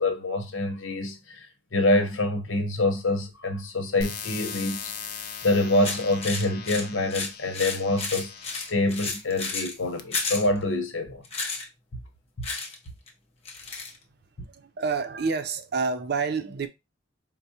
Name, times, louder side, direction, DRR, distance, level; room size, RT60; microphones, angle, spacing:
voice 1, 0.0-4.9 5.4-11.2, left 2 dB, 85° left, 0.9 m, -26 dB
sound 1, 4.0-8.7 9.4-10.0, left 6 dB, 50° left, 0.4 m, -39 dB
sound 2, 5.8-9.7 10.1-10.5 11.2-11.7 12.4-12.8 13.1-13.2 13.5-14.0, left 4 dB, 30° left, 0.8 m, -32 dB
voice 2, 14.5-16.7, right 4 dB, 55° right, 0.5 m, -28 dB
4.6 x 2.1 x 2.8 m
head